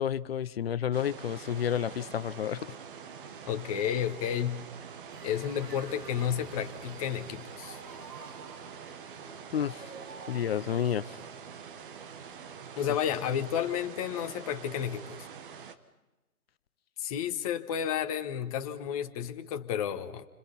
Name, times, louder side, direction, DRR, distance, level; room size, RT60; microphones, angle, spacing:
voice 1, 0.0-2.7 9.5-9.9 10.3-11.1, left 9 dB, 40° left, 0.8 m, -30 dB
sound 1, 0.9-15.7, right 6 dB, 35° right, 1.5 m, -45 dB
voice 2, 3.5-4.7 5.2-7.8 12.8-15.3 17.0-20.3, left 9 dB, 25° left, 1.3 m, -31 dB
sound 2, 5.1-10.4, right 3 dB, 90° right, 2.7 m, -50 dB
29.0 x 26.0 x 5.5 m
hypercardioid pair, 145°, 45 cm